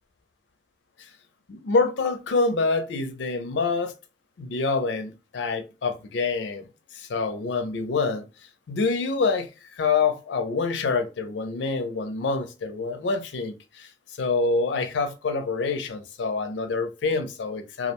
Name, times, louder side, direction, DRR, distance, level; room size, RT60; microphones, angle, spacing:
voice 1, 1.5-3.9 4.4-6.7 6.9-8.2 8.7-13.9 14.2-17.9, left 4 dB, 75° left, 0.5 m, -26 dB
2.4 x 2.1 x 2.8 m
head